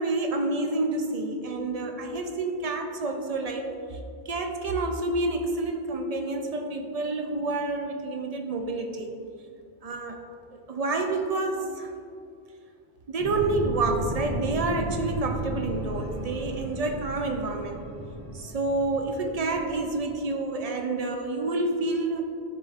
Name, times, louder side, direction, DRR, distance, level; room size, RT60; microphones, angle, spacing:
voice 1, 0.0-3.6 3.9-4.0 4.3-9.1 9.8-10.2 10.5-11.9 13.1-17.8 18.3-22.2, right 2 dB, 55° right, 4 dB, 0.4 m, -28 dB
sound 1, 13.2-20.0, right 1 dB, 40° right, 1.2 m, -35 dB
10.0 x 4.0 x 2.5 m, 2.4 s
omnidirectional pair, 1.1 m